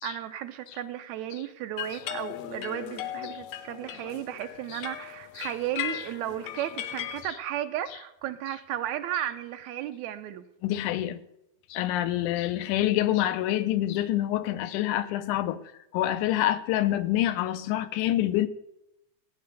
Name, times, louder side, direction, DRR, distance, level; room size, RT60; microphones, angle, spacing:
voice 1, 0.0-10.5, right 11 dB, 75° right, 1.9 m, -34 dB
sound 1, 1.8-7.2, left 11 dB, 70° left, 1.9 m, -37 dB
voice 2, 10.6-11.2 11.7-15.6 15.9-18.5, left 13 dB, 85° left, 2.3 m, -26 dB
15.5 x 9.5 x 6.7 m
omnidirectional pair, 3.5 m